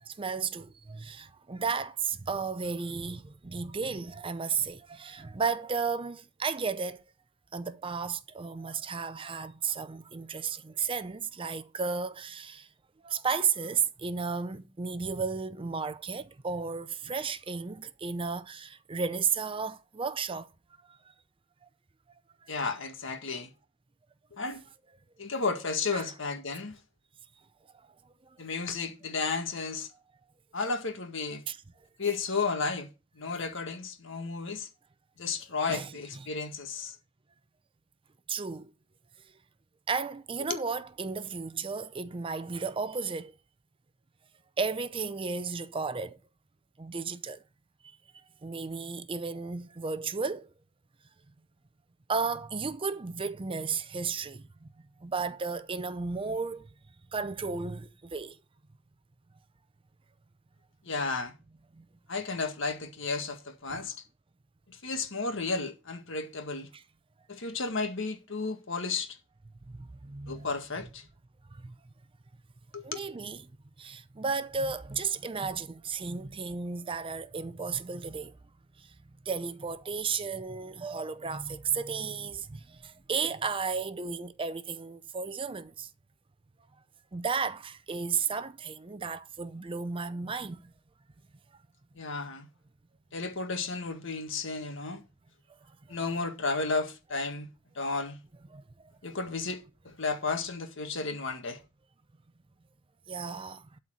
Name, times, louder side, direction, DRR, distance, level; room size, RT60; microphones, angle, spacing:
voice 1, 0.0-7.0 7.5-12.7 13.0-20.5 20.9-21.0 21.6-21.7 22.4-22.5 25.9-26.0 28.2-28.4 31.5-31.6 35.7-36.3 38.3-38.7 39.9-43.3 44.6-46.2 46.8-47.4 48.4-50.5 52.1-54.7 55.0-56.7 57.1-58.4 61.7-61.8 63.7-63.8 66.7-66.8 69.7-70.5 71.5-71.7 72.8-73.4 73.8-78.4 78.8-78.9 79.2-85.9 87.1-90.7 98.5-98.6 103.1-103.7, right 5 dB, 25° right, 0.5 m, -34 dB
voice 2, 22.5-23.5 24.3-24.7 25.2-26.8 28.4-29.9 30.5-31.4 32.0-32.9 33.2-34.7 35.2-37.0 40.5-40.6 60.8-61.3 62.1-64.0 64.7-66.7 67.3-69.2 70.3-71.0 72.7-73.0 92.0-92.5 93.1-95.0 95.9-97.5 97.8-98.2 99.0-101.6, left 4 dB, 65° left, 1.8 m, -33 dB
12.0 x 4.4 x 7.5 m
head